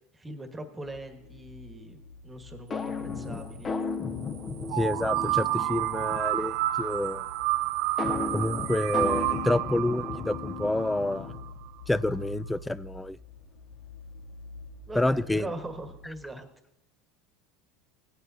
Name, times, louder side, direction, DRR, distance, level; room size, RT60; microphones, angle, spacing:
voice 1, 0.1-3.7 14.9-16.5, right 2 dB, 15° right, 6 dB, 1.4 m, -41 dB
sound 1, 0.8-16.1, left 2 dB, 80° left, 1.5 m, -48 dB
sound 2, 2.7-6.4 8.0-11.6, left 4 dB, 30° left, 0.8 m, -35 dB
sound 3, 4.7-11.5, right 17 dB, 65° right, 0.4 m, -30 dB
voice 2, 4.8-7.3 8.3-11.3 11.9-13.2 15.0-15.5, left 1 dB, 5° left, 18 dB, 0.3 m, -28 dB
17.0 x 9.1 x 2.7 m, 0.90 s
supercardioid pair, 110°, 0 cm